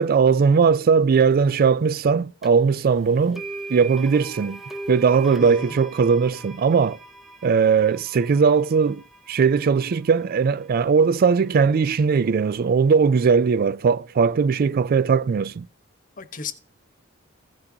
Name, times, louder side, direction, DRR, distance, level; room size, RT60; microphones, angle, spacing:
voice 1, 0.0-3.4 3.7-4.6 4.9-7.0 7.4-9.0 9.3-15.7, right 5 dB, 50° right, 0.3 m, -19 dB
sound 1, 2.4-2.5 3.4-11.4, right 2 dB, ahead, 0.6 m, -39 dB
voice 2, 5.4-5.8 16.2-16.5, left 5 dB, 40° left, 1.1 m, -34 dB
15.5 x 6.1 x 2.8 m
head